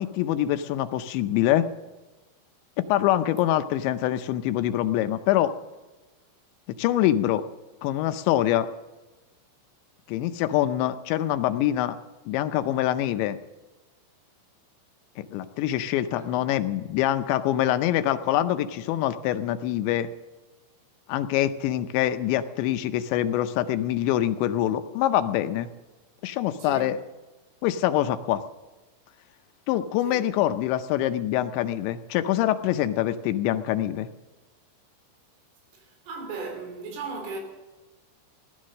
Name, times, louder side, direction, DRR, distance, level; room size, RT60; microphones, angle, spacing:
voice 1, 0.0-1.7 2.9-5.5 6.7-7.4 7.8-8.7 10.1-12.0 12.3-13.4 15.2-20.1 21.1-25.7 26.2-27.0 27.6-28.4 29.7-34.1, left 12 dB, 80° left, 2.9 m, -25 dB
voice 2, 16.2-16.5 26.6-26.9 30.1-30.3 35.7-37.4, right 3 dB, 90° right, 5.8 m, -37 dB
17.0 x 12.5 x 6.4 m
omnidirectional pair, 5.4 m